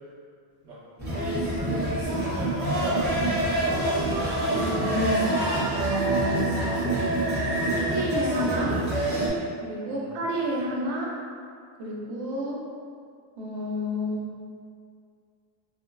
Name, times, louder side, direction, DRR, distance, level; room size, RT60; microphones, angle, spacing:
sound 1, 1.0-9.3, right 1 dB, 20° right, 0.6 m, -26 dB
voice 1, 1.1-3.7 9.9-10.1, right 1 dB, 85° right, -9 dB, 1.2 m, -35 dB
voice 2, 4.5-8.8 9.6-11.1 11.8-12.6 13.4-14.4, right 1 dB, 65° right, -3 dB, 0.7 m, -30 dB
2.6 x 2.2 x 2.2 m, 2.2 s
cardioid pair, 140°, 49 cm